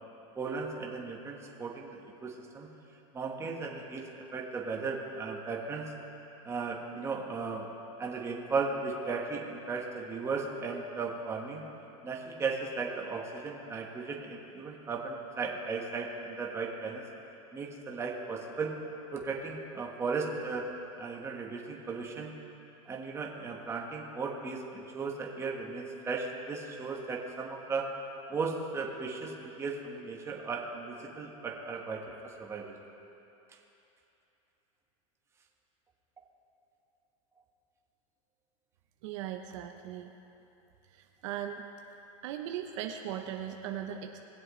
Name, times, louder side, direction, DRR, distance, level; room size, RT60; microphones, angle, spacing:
voice 1, 0.3-2.7 3.1-5.8 6.4-7.7 8.0-11.6 12.0-17.0 17.5-18.7 19.1-20.7 21.0-22.3 22.9-27.9 28.3-32.0 32.4-32.7, right 4 dB, 15° right, -1 dB, 1.3 m, -36 dB
voice 2, 39.0-40.1 40.9-41.6 42.2-44.2, right 10 dB, 60° right, 4 dB, 0.8 m, -38 dB
20.0 x 7.7 x 3.2 m, 2.9 s
supercardioid pair, 140°, 17 cm